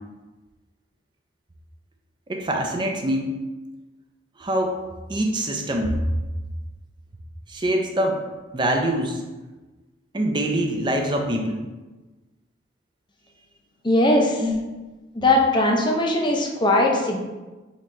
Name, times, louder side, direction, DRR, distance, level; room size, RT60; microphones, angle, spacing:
voice 1, 2.3-3.3 4.4-4.7 5.1-5.9 7.5-8.2 8.5-9.2 10.1-11.6 14.4-14.5, right 1 dB, 25° right, 2 dB, 0.5 m, -24 dB
voice 2, 13.8-14.4 15.1-17.2, left 1 dB, 25° left, 0 dB, 0.6 m, -19 dB
3.8 x 3.2 x 4.3 m, 1.2 s
head